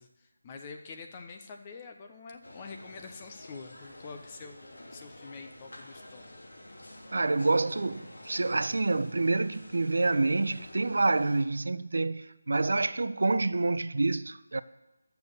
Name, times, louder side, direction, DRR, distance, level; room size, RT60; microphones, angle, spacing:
voice 1, 0.0-6.2, left 4 dB, 25° left, 0.9 m, -46 dB
sound 1, 2.4-11.4, left 1 dB, 80° left, 2.8 m, -49 dB
voice 2, 7.1-14.6, right 3 dB, 60° right, 0.5 m, -27 dB
11.5 x 7.0 x 6.7 m
figure-of-eight pair, 160°, 0 cm